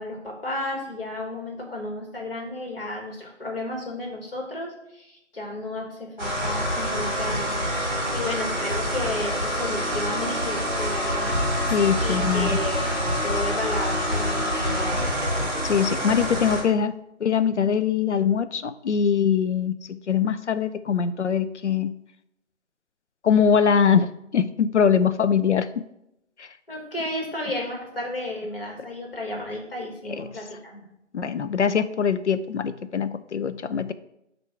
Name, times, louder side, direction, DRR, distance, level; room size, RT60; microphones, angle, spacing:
voice 1, 0.0-7.6 8.1-11.4 12.0-14.9 26.7-30.8, left 1 dB, 50° left, 0 dB, 1.9 m, -33 dB
sound 1, 6.2-16.6, equal, 15° right, 1.2 m, -26 dB
voice 2, 11.7-12.6 15.6-21.9 23.2-25.9 26.4-26.6 30.2-30.3 31.1-33.9, left 7 dB, 70° left, 11 dB, 0.5 m, -23 dB
7.6 x 2.7 x 5.7 m, 0.83 s
figure-of-eight pair, 175°, 37 cm